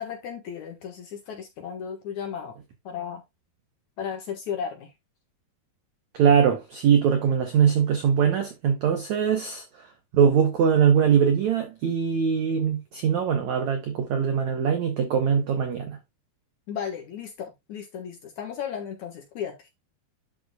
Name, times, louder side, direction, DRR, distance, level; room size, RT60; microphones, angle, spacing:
voice 1, 0.0-2.6 2.8-3.2 4.0-4.9 16.7-19.5, left 8 dB, 60° left, 2.2 m, -34 dB
voice 2, 6.1-9.6 10.1-16.0, right 7 dB, 85° right, 1.6 m, -22 dB
11.0 x 5.3 x 2.3 m
omnidirectional pair, 4.9 m